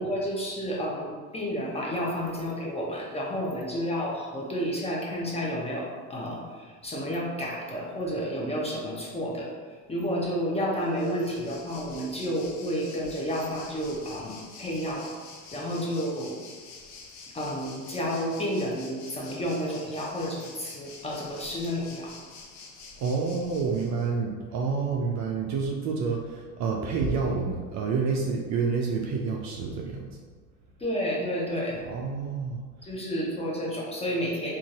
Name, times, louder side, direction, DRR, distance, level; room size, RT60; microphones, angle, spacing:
voice 1, 0.0-15.1 15.5-16.4 17.3-22.2 30.8-31.8 32.8-34.6, equal, 15° left, -3 dB, 0.7 m, -31 dB
Waves surf, 10.8-24.1, left 4 dB, 75° left, 0.8 m, -47 dB
voice 2, 23.0-30.2 31.9-32.9, right 5 dB, 40° right, 0 dB, 0.4 m, -29 dB
3.8 x 2.5 x 2.4 m, 1.5 s
hypercardioid pair, 75°, 45 cm